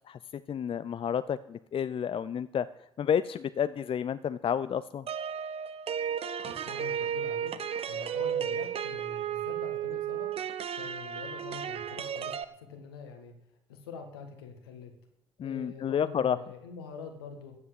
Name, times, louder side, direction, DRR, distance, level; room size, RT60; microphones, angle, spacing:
voice 1, 0.5-2.7 3.0-5.1 15.4-16.4, left 8 dB, 45° left, 14 dB, 0.6 m, -30 dB
sound 1, 5.1-12.4, right 8 dB, 50° right, 1.0 m, -34 dB
voice 2, 6.4-7.5 7.9-10.3 10.7-13.3 13.7-14.9 15.4-17.6, left 5 dB, 85° left, 5 dB, 1.8 m, -45 dB
14.5 x 8.0 x 7.8 m, 0.81 s
figure-of-eight pair, 40°, 12 cm